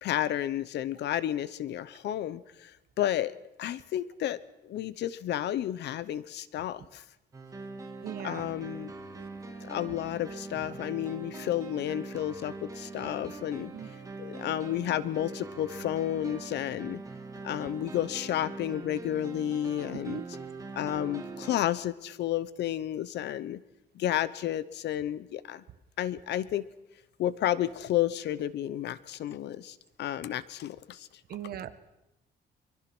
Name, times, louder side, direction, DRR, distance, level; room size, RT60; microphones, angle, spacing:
voice 1, 0.0-2.7 3.0-4.4 4.6-7.0 8.2-8.9 9.6-13.7 14.2-17.0 17.4-20.2 20.7-23.6 23.9-25.6 26.0-26.7 27.2-31.1, left 12 dB, 70° left, 17 dB, 1.0 m, -31 dB
sound 1, 7.3-21.6, right 3 dB, 20° right, 2.5 m, -42 dB
voice 2, 8.0-8.5 13.7-13.9 20.1-20.2 31.3-31.7, right 10 dB, 55° right, 11 dB, 1.4 m, -38 dB
23.5 x 23.5 x 6.2 m, 0.91 s
cardioid pair, 165°, 18 cm